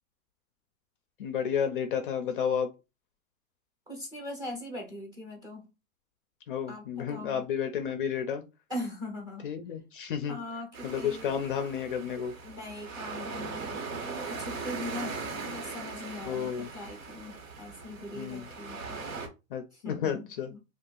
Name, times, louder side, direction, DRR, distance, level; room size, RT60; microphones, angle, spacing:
voice 1, 1.2-2.7 6.5-8.4 9.4-10.4 10.8-12.3 16.3-16.7 18.1-18.5 19.5-20.5, left 8 dB, 40° left, 0.4 m, -31 dB
voice 2, 3.9-5.7 6.7-7.4 8.7-9.5 10.2-11.3 12.4-19.0 19.7-20.6, left 1 dB, 10° right, 0.6 m, -41 dB
sound 1, 10.7-19.3, right 4 dB, 80° right, 1.2 m, -39 dB
2.7 x 2.4 x 3.8 m
hypercardioid pair, 155°, 40 cm